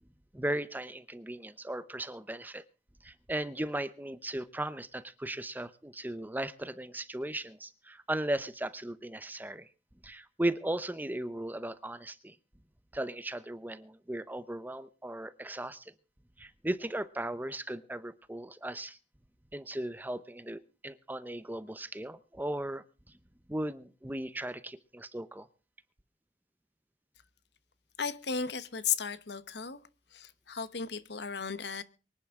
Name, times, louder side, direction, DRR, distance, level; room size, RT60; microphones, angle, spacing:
voice 1, 0.3-2.6 3.0-9.7 10.0-12.4 12.9-15.9 16.4-19.0 19.5-22.8 23.5-25.5, right 1 dB, 10° right, 0.7 m, -37 dB
voice 2, 28.0-29.8 30.1-31.8, left 6 dB, 70° left, 1.1 m, -35 dB
24.0 x 10.5 x 3.7 m
head